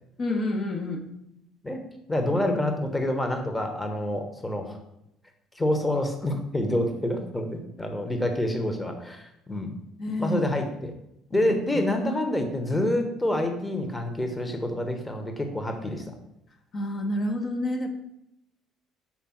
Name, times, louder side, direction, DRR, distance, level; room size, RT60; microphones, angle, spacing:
voice 1, 0.2-1.0 10.0-10.5 11.3-11.8 16.7-17.9, left 1 dB, 45° left, 3 dB, 0.9 m, -29 dB
voice 2, 2.1-4.8 5.6-9.7 10.2-10.9 11.3-16.1, left 1 dB, 15° left, 5 dB, 1.0 m, -27 dB
5.9 x 3.3 x 5.8 m, 0.83 s
supercardioid pair, 85°, 0 cm